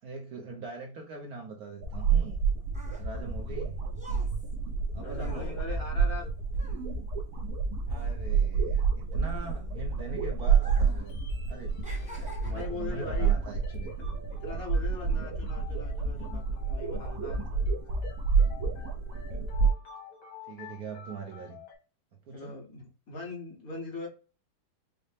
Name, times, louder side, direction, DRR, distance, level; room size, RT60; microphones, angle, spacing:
voice 1, 0.0-2.4 3.0-3.8 4.9-5.6 7.8-11.1 11.5-11.8 12.4-13.9 15.1-15.2 15.6-15.7 16.2-16.4 19.1-19.5 20.5-21.6 22.2-22.6, right 3 dB, 65° right, 1.0 m, -42 dB
sound 1, 1.8-19.7, right 5 dB, 90° right, 1.6 m, -29 dB
sound 2, 2.4-7.6 7.8-10.0 10.5-11.1 11.4-12.9 13.6-13.8, right 3 dB, 10° right, 0.4 m, -47 dB
voice 2, 5.0-6.3 11.9-13.4 14.0-17.6 22.3-24.1, left 3 dB, 50° left, 1.6 m, -41 dB
sound 3, 11.0-21.7, left 6 dB, 85° left, 2.2 m, -51 dB
5.5 x 2.1 x 3.3 m
omnidirectional pair, 2.2 m